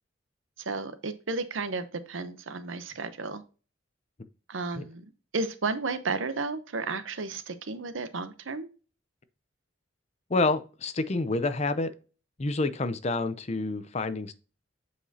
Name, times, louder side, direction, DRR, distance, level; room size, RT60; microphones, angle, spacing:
voice 1, 0.6-3.4 4.5-8.7, right 3 dB, 80° right, 0.8 m, -33 dB
voice 2, 10.3-11.9 12.4-14.3, left 3 dB, 35° left, 0.5 m, -28 dB
8.0 x 4.8 x 2.8 m
head